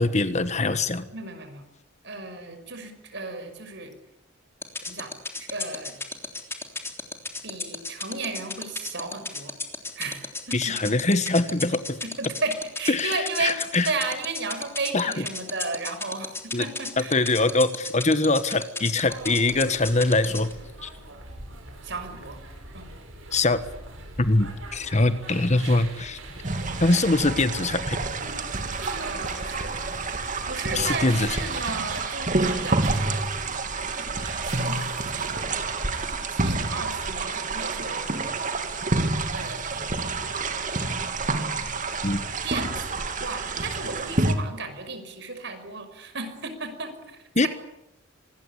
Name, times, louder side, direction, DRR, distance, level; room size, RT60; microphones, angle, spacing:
voice 1, 0.0-1.0 10.5-12.0 12.9-13.9 14.9-15.2 16.5-16.6 17.0-20.5 20.8-20.9 23.3-23.6 24.2-26.2 26.8-28.0 30.7-31.4 42.0-42.2 47.3-47.5, left 2 dB, 35° left, 12 dB, 1.4 m, -23 dB
voice 2, 1.1-1.6 2.0-3.9 4.9-5.1 5.4-6.0 7.4-9.5 9.9-10.2 10.5-10.9 12.0-17.2 21.8-22.4 22.7-22.9 29.0-29.7 30.5-33.2 34.1-35.6 36.3-38.1 39.3-39.9 42.4-47.5, right 3 dB, 60° right, 9 dB, 5.7 m, -34 dB
sound 1, 4.6-20.5, left 3 dB, 10° left, 3.4 m, -31 dB
sound 2, 19.0-36.1, right 2 dB, 80° right, 7.9 m, -42 dB
sound 3, 26.4-44.4, right 3 dB, 40° right, 2.7 m, -28 dB
25.5 x 20.5 x 9.9 m, 0.81 s
head